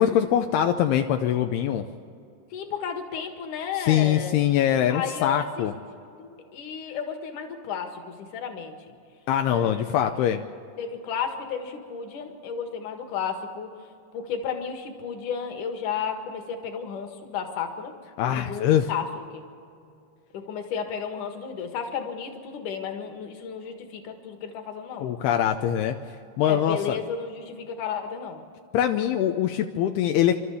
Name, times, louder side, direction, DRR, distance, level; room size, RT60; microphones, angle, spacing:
voice 1, 0.0-1.9 3.9-5.7 9.3-10.4 18.2-18.9 25.0-26.0 26.4-27.0 28.7-30.4, left 10 dB, 85° left, 6 dB, 2.4 m, -23 dB
voice 2, 2.5-4.4 4.9-5.7 6.2-8.7 9.5-10.1 10.8-13.7 14.1-17.9 18.3-19.4 20.3-25.1 26.4-28.4, left 7 dB, 55° left, 5 dB, 2.6 m, -33 dB
28.5 x 13.0 x 7.1 m, 2.5 s
omnidirectional pair, 5.2 m